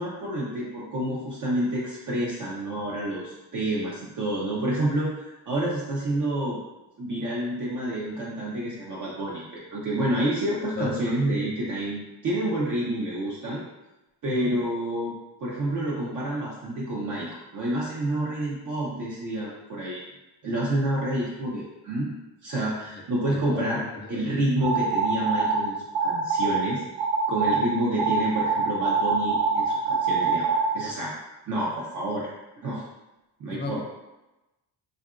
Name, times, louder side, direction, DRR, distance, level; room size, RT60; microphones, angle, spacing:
voice 1, 0.0-6.6 7.0-13.6 14.2-20.0 20.4-22.2 22.4-23.8 24.1-25.8 26.0-26.8 27.3-31.1 31.5-32.3 32.6-32.8 33.4-33.8, right 1 dB, 45° right, -6 dB, 0.6 m, -28 dB
voice 2, 22.9-24.4 33.4-33.8, left 3 dB, 25° left, 1 dB, 0.4 m, -35 dB
sound 1, 24.6-25.6 25.9-26.6 27.0-27.6 28.0-30.7, right 5 dB, 90° right, 0.6 m, -24 dB
2.8 x 2.4 x 2.4 m, 1.0 s
cardioid pair, 100°, 43 cm